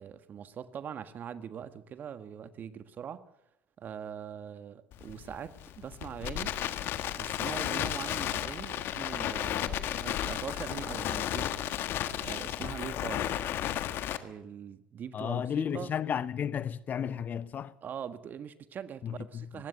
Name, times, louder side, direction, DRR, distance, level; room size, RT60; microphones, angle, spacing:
voice 1, 0.0-3.2 3.8-6.5 7.1-11.6 12.2-13.3 14.2-15.9 17.8-19.7, right 8 dB, 45° right, 1.5 m, -42 dB
Crackle, 4.9-14.2, left 11 dB, 55° left, 1.5 m, -33 dB
voice 2, 15.1-17.7 19.0-19.4, left 8 dB, 40° left, 0.9 m, -33 dB
20.0 x 16.0 x 8.3 m
hypercardioid pair, 75°, 4 cm